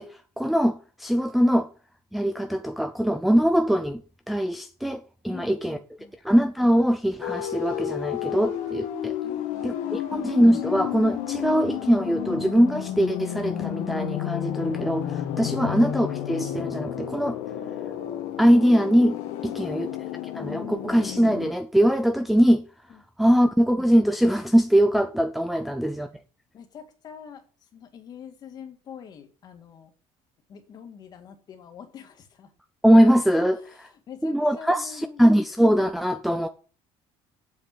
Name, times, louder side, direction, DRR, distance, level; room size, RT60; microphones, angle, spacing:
voice 1, 0.0-1.7 2.1-4.0 4.3-5.8 6.2-9.2 9.6-17.4 18.4-19.9 20.3-22.7 23.2-26.1 32.8-33.6 34.2-36.5, equal, ahead, 0.5 m, -22 dB
voice 2, 5.3-6.1 9.2-10.1 22.9-23.0 25.6-25.7 26.5-29.9 30.5-32.5 33.5-35.2, left 7 dB, 35° left, 2.0 m, -45 dB
sound 1, 7.2-21.5, left 11 dB, 75° left, 1.9 m, -31 dB
7.8 x 7.8 x 8.3 m
cardioid pair, 180°, 12 cm